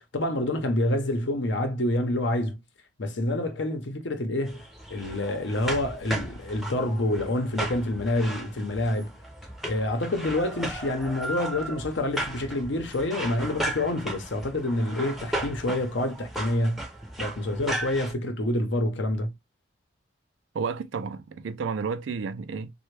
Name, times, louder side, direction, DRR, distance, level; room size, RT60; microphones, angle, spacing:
voice 1, 0.0-2.6 3.0-4.6 4.9-9.1 9.7-16.8 17.2-19.3, left 1 dB, 75° left, 0.8 m, -27 dB
sound 1, 4.5-18.1, right 1 dB, ahead, 0.5 m, -36 dB
voice 2, 20.5-22.7, right 5 dB, 80° right, 0.4 m, -31 dB
3.3 x 2.3 x 3.2 m
head